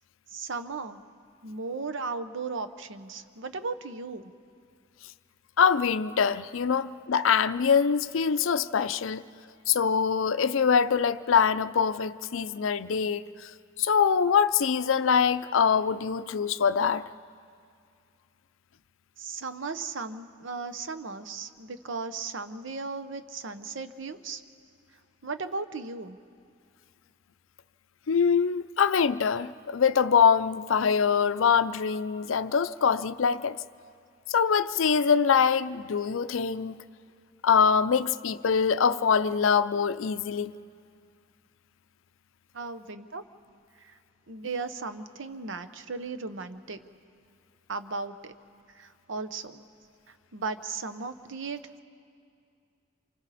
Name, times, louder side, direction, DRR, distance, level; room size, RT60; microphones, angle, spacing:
voice 1, 0.3-1.0 1.4-4.2 19.2-24.4 25.2-26.2 42.5-43.2 43.8-44.0 44.3-46.8 47.7-48.3 48.7-49.6 50.1-51.8, right 4 dB, 70° right, 0.8 m, -36 dB
voice 2, 5.6-9.2 9.7-13.5 13.8-17.0 28.1-33.6 34.3-36.8 37.4-40.5, left 6 dB, 75° left, 0.5 m, -24 dB
29.0 x 26.5 x 4.2 m
head